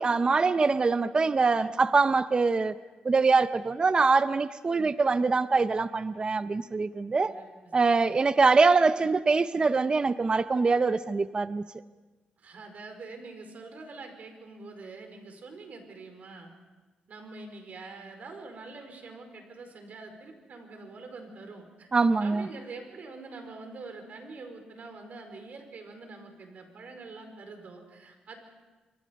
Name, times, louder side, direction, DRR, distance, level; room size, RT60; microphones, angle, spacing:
voice 1, 0.0-2.7 3.0-7.3 7.7-11.7 21.9-22.5, right 4 dB, 30° right, 12 dB, 0.6 m, -24 dB
voice 2, 12.4-16.5 17.1-21.9 22.2-28.4, right 3 dB, 60° right, 5 dB, 4.8 m, -45 dB
27.5 x 24.0 x 5.3 m, 1.2 s
cardioid pair, 95°, 3 cm